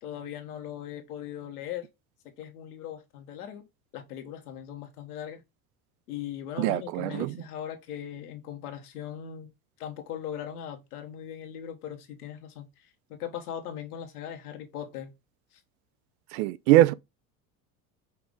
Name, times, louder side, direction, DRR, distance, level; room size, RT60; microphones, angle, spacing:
voice 1, 0.0-1.9 2.4-3.6 3.9-5.4 6.1-9.5 9.8-15.1, left 10 dB, 85° left, 1.2 m, -39 dB
voice 2, 6.6-7.3 16.3-16.9, right 15 dB, 70° right, 0.5 m, -22 dB
5.6 x 2.5 x 3.6 m
hypercardioid pair, 85°, 44 cm